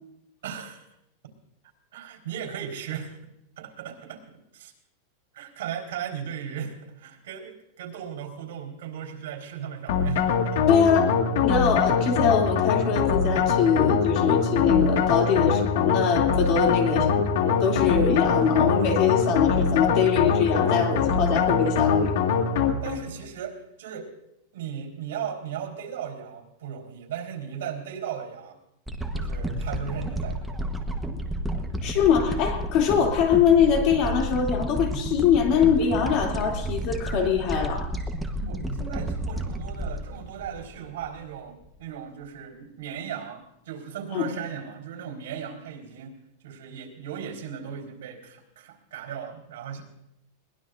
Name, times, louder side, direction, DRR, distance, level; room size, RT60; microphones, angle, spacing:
voice 1, 0.4-0.9 1.9-3.2 3.6-4.7 5.3-10.6 16.8-17.0 22.8-24.1 24.5-28.6 29.1-30.6 31.5-31.7 38.3-49.8, right 8 dB, 80° right, 2 dB, 3.9 m, -37 dB
sound 1, 9.9-23.1, left 6 dB, 75° left, 1.8 m, -23 dB
voice 2, 10.7-11.1 11.4-17.1 17.4-22.1 31.8-37.9 44.1-44.3, left 7 dB, 40° left, 2 dB, 2.8 m, -23 dB
sound 2, 28.9-41.2 41.7-41.8, right 1 dB, 5° right, 1.1 m, -31 dB
22.0 x 19.0 x 2.6 m, 0.83 s
supercardioid pair, 155°, 0 cm